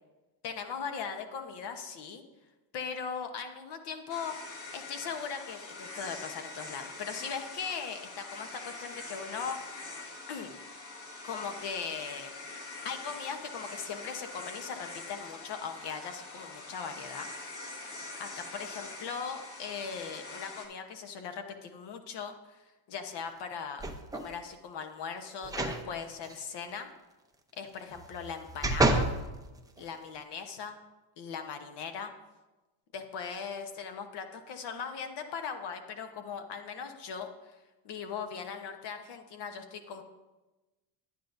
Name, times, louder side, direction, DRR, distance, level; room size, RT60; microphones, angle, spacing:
voice 1, 0.4-2.2 2.7-4.4 4.7-9.9 10.3-10.6 11.2-12.3 12.8-17.3 18.2-23.8 24.1-26.9 27.6-29.1 29.8-30.8 31.2-32.1 32.9-37.6 37.8-40.0, left 6 dB, 55° left, 6 dB, 1.1 m, -39 dB
sound 1, 4.1-20.7, left 3 dB, 40° left, 1.7 m, -44 dB
sound 2, 23.8-24.3 25.4-25.8 26.2-26.3 27.9-29.2 29.8-29.9, right 2 dB, 10° right, 0.6 m, -29 dB
10.5 x 9.4 x 2.6 m, 1.1 s
supercardioid pair, 105°, 47 cm